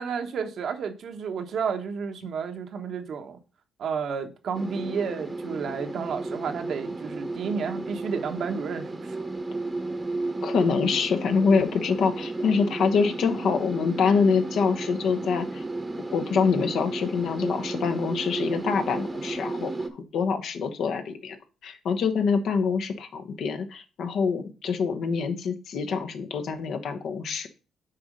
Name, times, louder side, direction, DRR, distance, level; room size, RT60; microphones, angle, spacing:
voice 1, 0.0-3.4 3.8-9.2, right 6 dB, 65° right, 1.1 m, -31 dB
sound 1, 4.5-19.9, right 2 dB, 20° right, 0.9 m, -33 dB
voice 2, 10.4-15.6 16.1-19.7 20.1-21.4 21.6-27.5, left 5 dB, 70° left, 1.0 m, -25 dB
6.9 x 4.3 x 5.1 m
cardioid pair, 90°, 0 cm